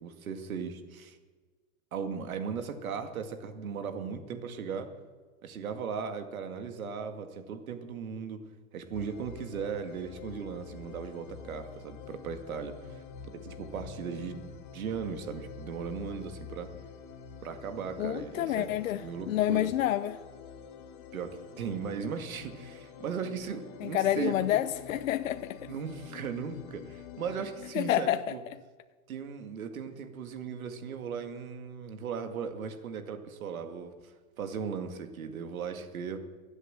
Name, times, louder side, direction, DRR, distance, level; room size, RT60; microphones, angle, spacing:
voice 1, 0.0-1.2 1.9-4.9 5.4-8.4 8.7-13.0 13.3-16.7 17.4-18.7 18.9-19.7 21.1-24.5 25.6-28.4 29.1-36.2, right 6 dB, 80° right, 2.3 m, -37 dB
sound 1, 8.9-27.7, left 7 dB, 35° left, 1.3 m, -47 dB
voice 2, 18.0-20.2 23.8-25.7 27.7-28.4, left 12 dB, 70° left, 0.8 m, -29 dB
23.0 x 8.1 x 7.6 m
supercardioid pair, 165°, 41 cm